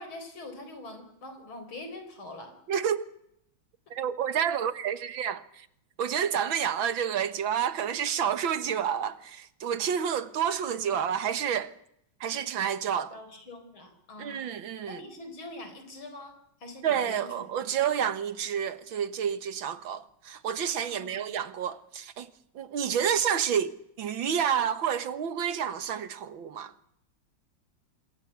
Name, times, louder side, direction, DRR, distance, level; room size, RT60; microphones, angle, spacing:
voice 1, 0.0-2.5 13.1-14.5 14.9-16.3 16.6-17.7 20.9-21.3, left 2 dB, 85° left, 5.1 m, -44 dB
voice 2, 2.7-3.1 3.9-5.7 6.0-11.7 12.2-13.2 14.2-15.0 16.8-22.3 22.6-26.7, right 8 dB, 75° right, 2.1 m, -29 dB
27.5 x 21.0 x 8.2 m
omnidirectional pair, 2.2 m